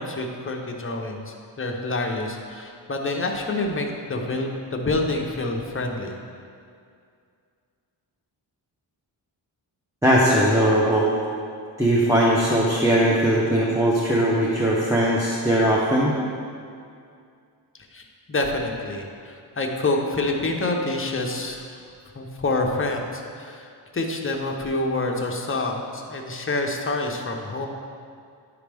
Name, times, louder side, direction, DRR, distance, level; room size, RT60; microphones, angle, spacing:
voice 1, 0.0-6.2 17.9-18.0 18.3-21.6 22.1-23.7 23.9-27.7, left 2 dB, 30° left, 1 dB, 0.8 m, -27 dB
voice 2, 10.0-11.1 11.8-16.1, right 1 dB, 5° right, -6 dB, 0.8 m, -19 dB
10.0 x 4.9 x 3.4 m, 2.3 s
wide cardioid pair, 95°, 44 cm